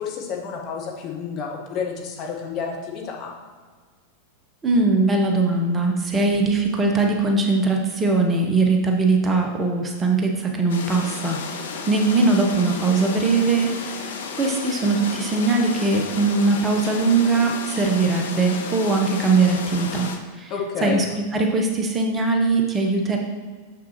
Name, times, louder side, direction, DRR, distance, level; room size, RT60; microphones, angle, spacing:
voice 1, 0.0-3.3 20.5-21.0, left 6 dB, 40° left, 0 dB, 1.2 m, -30 dB
voice 2, 4.6-11.4 11.9-20.1 20.4-20.5 20.8-23.2, right 3 dB, 20° right, 2 dB, 0.8 m, -21 dB
sound 1, 10.7-20.2, left 5 dB, 60° left, 0.7 m, -33 dB
6.7 x 6.0 x 3.0 m, 1.5 s
figure-of-eight pair, 90°, 0 cm